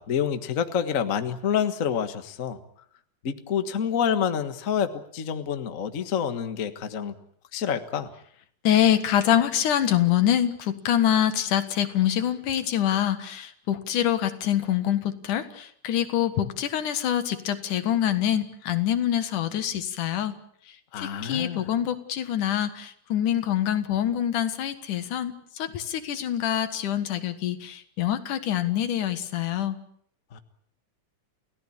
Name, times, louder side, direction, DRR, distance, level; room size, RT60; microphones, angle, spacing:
voice 1, 0.0-2.6 3.2-7.1 7.5-8.1 20.9-21.6 30.3-30.4, left 8 dB, 40° left, 9 dB, 1.2 m, -27 dB
voice 2, 8.6-20.4 21.0-29.8, left 10 dB, 85° left, 10 dB, 3.1 m, -25 dB
29.0 x 16.5 x 8.7 m, 0.65 s
omnidirectional pair, 3.5 m